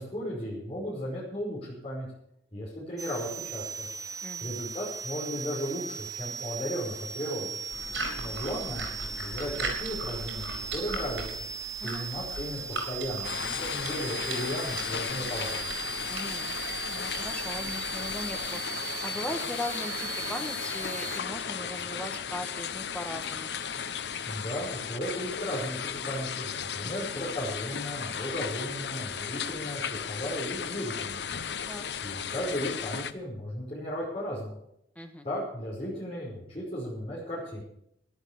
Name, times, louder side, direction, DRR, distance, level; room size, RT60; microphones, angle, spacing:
voice 1, 0.0-2.1 2.5-3.9 4.4-7.6 8.2-11.4 11.8-15.5 24.2-31.2 32.0-34.6 35.2-37.6, equal, 35° left, -6 dB, 5.3 m, -35 dB
sound 1, 3.0-21.2, right 5 dB, 20° right, 0.6 m, -38 dB
voice 2, 4.2-4.5 8.1-8.6 11.8-12.1 16.1-16.6 16.9-18.6 19.0-23.6 26.8-27.1 31.7-31.8 34.9-35.2, left 1 dB, 10° left, 5 dB, 1.6 m, -39 dB
sound 2, 7.7-18.6, right 2 dB, 75° right, 5.7 m, -39 dB
sound 3, 13.2-33.1, left 7 dB, 65° left, 0.7 m, -35 dB
13.5 x 11.5 x 7.3 m, 0.75 s
head